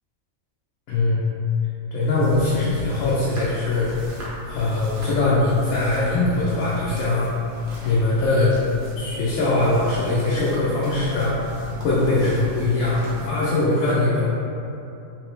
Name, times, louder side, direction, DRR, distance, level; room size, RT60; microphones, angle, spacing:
voice 1, 0.9-1.3 1.9-3.9 4.5-7.3 7.8-8.5 9.0-11.5 11.8-14.2, left 2 dB, 90° left, -8 dB, 1.1 m, -21 dB
sound 1, 2.2-13.3, left 3 dB, 75° right, 1.3 m, -36 dB
3.7 x 2.9 x 3.1 m, 2.8 s
omnidirectional pair, 1.4 m